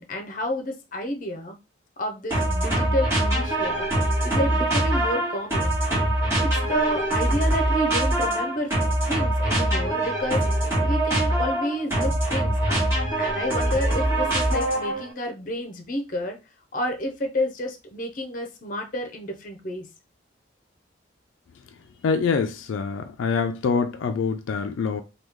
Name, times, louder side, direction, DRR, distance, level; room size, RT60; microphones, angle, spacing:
voice 1, 0.0-1.5 2.0-3.9 4.2-5.7 6.4-8.7 9.1-10.4 10.8-12.8 13.2-16.4 16.7-19.9, equal, 45° left, 0.6 m, -30 dB
sound 1, 2.3-15.1, right 1 dB, 15° right, 1.2 m, -23 dB
voice 2, 22.0-25.0, left 5 dB, 80° left, 0.3 m, -25 dB
3.0 x 2.3 x 3.5 m
head